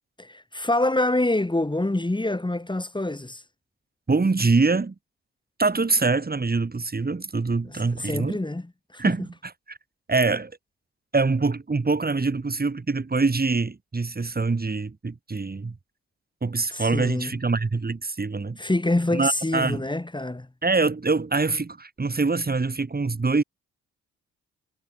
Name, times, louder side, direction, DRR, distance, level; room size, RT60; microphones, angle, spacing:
voice 1, 0.2-3.4 7.6-9.1 16.7-17.4 18.6-20.5, left 2 dB, 15° left, 6.2 m, -26 dB
voice 2, 4.1-4.9 5.6-8.4 9.0-9.8 10.1-10.5 11.1-15.7 16.4-18.6 19.1-19.8 20.6-23.4, right 3 dB, 25° right, 6.2 m, -24 dB
figure-of-eight pair, 40°, 35 cm